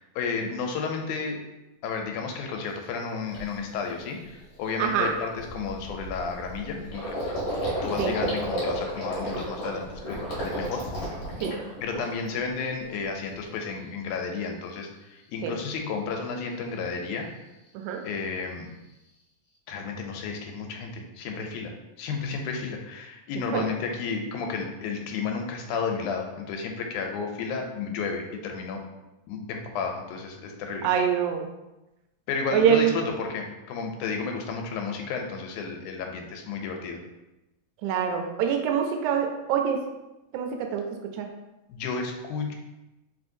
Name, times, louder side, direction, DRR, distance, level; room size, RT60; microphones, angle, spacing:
voice 1, 0.0-1.4 1.8-7.2 7.8-10.8 11.8-17.3 18.0-18.7 19.7-21.7 22.0-28.8 29.3-30.9 32.3-37.0 41.7-42.5, left 5 dB, 80° left, 3 dB, 2.0 m, -32 dB
Gurgling, 2.8-2.9 3.3-3.6 4.0-4.1 4.4-12.4 12.8-13.4, right 1 dB, 50° left, 1.7 m, -33 dB
voice 2, 4.8-5.1 8.0-8.1 11.4-11.6 15.4-15.5 17.7-18.0 23.5-23.7 30.8-31.5 32.5-32.9 37.8-39.8 40.3-41.3, right 8 dB, 80° right, 3 dB, 1.9 m, -25 dB
4.5 x 3.5 x 2.6 m, 0.99 s
omnidirectional pair, 3.5 m